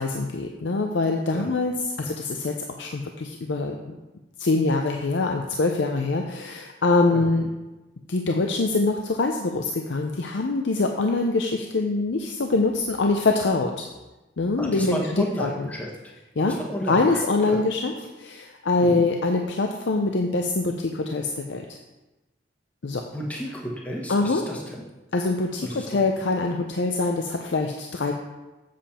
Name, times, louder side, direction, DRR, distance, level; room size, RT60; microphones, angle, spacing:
voice 1, 0.0-3.9 4.4-7.5 8.1-13.9 14.4-15.7 16.4-16.6 16.9-21.6 22.8-23.0 24.1-24.4 25.1-28.1, left 3 dB, 75° left, 3 dB, 0.6 m, -24 dB
voice 2, 14.6-16.1 16.5-17.2 17.4-17.6 18.8-19.0 23.1-24.8 25.6-26.0, equal, 10° left, -1 dB, 1.0 m, -32 dB
7.6 x 7.3 x 4.3 m, 1.1 s
head